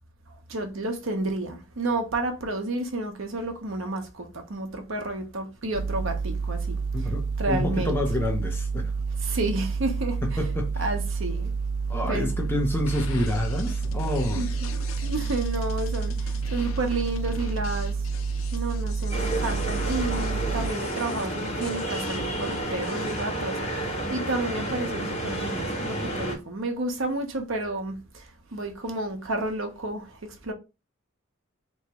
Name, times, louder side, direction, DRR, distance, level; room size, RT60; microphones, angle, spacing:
voice 1, 0.5-6.8 7.4-8.0 9.2-10.2 10.8-11.5 12.1-12.3 14.3-18.0 18.5-28.3 28.5-30.5, right 2 dB, 65° right, 0.9 m, -31 dB
sound 1, 5.7-20.7, right 5 dB, 85° right, 0.3 m, -29 dB
voice 2, 6.9-8.9 10.2-10.9 11.9-14.4, left 1 dB, 10° left, 0.6 m, -28 dB
sound 2, 12.9-23.2, left 4 dB, 75° left, 0.6 m, -42 dB
sound 3, 19.1-26.4, right 1 dB, 30° left, 1.5 m, -30 dB
3.5 x 3.1 x 2.9 m
head